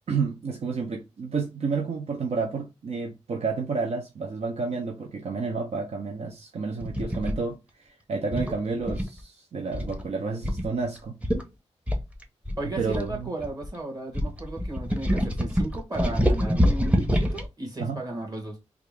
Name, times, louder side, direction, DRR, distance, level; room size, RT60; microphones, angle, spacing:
voice 1, 0.1-11.2 12.8-13.3 17.8-18.0, right 4 dB, 70° right, 0.6 m, -30 dB
sound 1, 6.8-7.4 8.3-9.2 9.7-10.0 10.4-10.6 11.0-11.1 11.2-11.4 11.9-13.7 14.1-17.4, equal, 10° right, 0.9 m, -25 dB
voice 2, 12.6-18.6, right 2 dB, 35° right, 1.9 m, -35 dB
3.5 x 2.5 x 3.4 m
cardioid pair, 75°, 11 cm